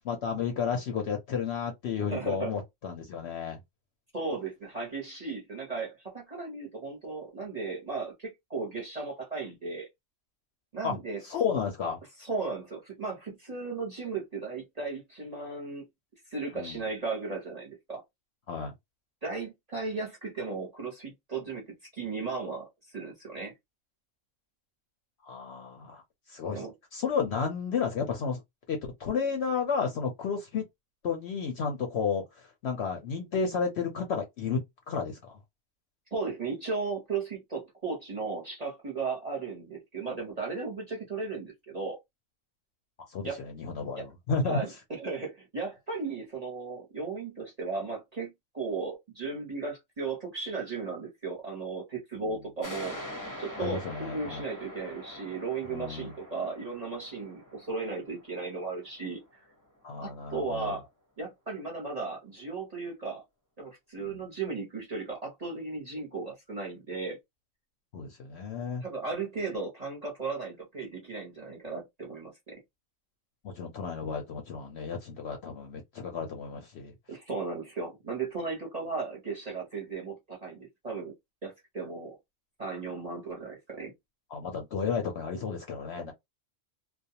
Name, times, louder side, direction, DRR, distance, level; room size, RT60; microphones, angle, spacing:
voice 1, 0.1-3.6 10.8-11.0 11.2-12.0 16.5-16.8 18.5-18.7 25.2-26.0 26.3-26.6 26.9-28.4 28.7-30.6 31.0-34.6 34.9-35.4 43.1-44.6 53.6-54.4 55.7-56.1 59.8-60.8 67.9-68.8 73.4-76.9 84.3-86.1, left 6 dB, 65° left, 0.7 m, -32 dB
voice 2, 2.1-2.6 4.1-9.9 10.7-11.2 12.2-15.8 16.3-18.0 19.2-21.7 21.9-23.5 26.5-26.7 36.1-42.0 43.2-43.4 43.9-44.1 44.4-53.0 53.4-59.4 60.0-60.9 61.2-63.2 63.6-67.2 68.8-72.6 77.1-81.1 81.4-82.2 82.6-83.9, right 4 dB, 35° right, 0.7 m, -36 dB
sound 1, 52.6-59.8, left 1 dB, 20° left, 0.5 m, -44 dB
2.4 x 2.2 x 2.7 m
omnidirectional pair, 1.5 m